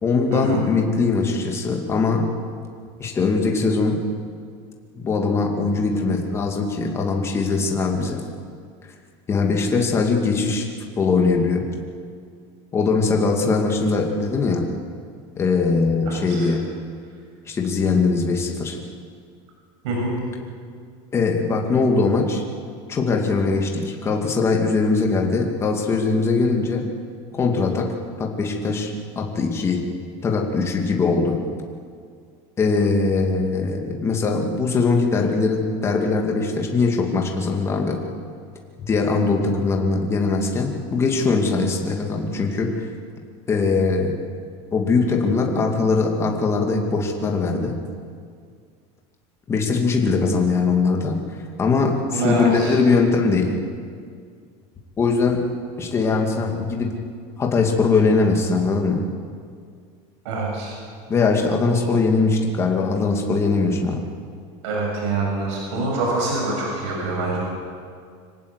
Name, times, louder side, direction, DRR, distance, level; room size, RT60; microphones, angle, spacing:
voice 1, 0.0-2.3 3.0-4.0 4.9-8.2 9.3-10.7 11.0-11.6 12.7-14.7 15.4-16.6 17.4-18.8 21.1-22.4 22.9-26.9 27.3-29.9 30.2-31.4 32.6-38.0 38.9-42.9 43.5-44.1 44.7-47.8 49.5-51.2 51.6-53.6 55.0-55.4 55.8-56.9 57.4-59.0 61.1-64.0, left 4 dB, 20° left, 1 dB, 2.4 m, -21 dB
voice 2, 16.1-16.5 19.8-20.1 52.1-52.7 60.2-60.8 61.7-61.9 64.6-67.4, right 2 dB, 90° right, -2 dB, 6.8 m, -25 dB
25.5 x 17.5 x 8.2 m, 2.1 s
cardioid pair, 170°, 15 cm